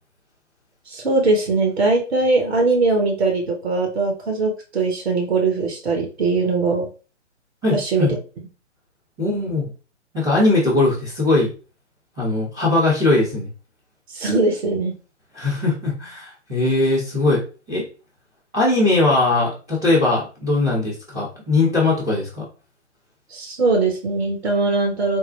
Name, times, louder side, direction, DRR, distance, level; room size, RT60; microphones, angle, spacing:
voice 1, 0.9-6.9 7.7-8.2 14.1-14.9 23.3-25.2, right 3 dB, 60° right, 2 dB, 1.2 m, -21 dB
voice 2, 7.6-8.1 9.2-9.7 10.1-11.5 12.2-13.5 15.3-17.4 17.7-17.8 18.5-22.4, left 2 dB, 5° right, -13 dB, 0.3 m, -20 dB
3.6 x 2.1 x 3.3 m, 0.35 s
figure-of-eight pair, 125°, 36 cm